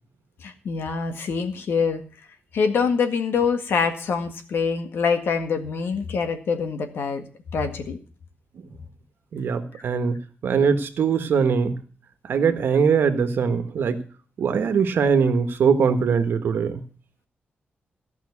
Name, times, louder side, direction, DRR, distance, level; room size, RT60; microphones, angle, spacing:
voice 1, 0.4-2.0 2.5-7.2 7.5-8.0 9.7-9.8, left 5 dB, 75° left, 7 dB, 1.8 m, -25 dB
voice 2, 9.3-11.8 12.2-14.0 14.4-16.8, right 6 dB, 70° right, 9 dB, 1.4 m, -22 dB
14.5 x 5.8 x 8.4 m, 0.40 s
wide cardioid pair, 170°, 4 cm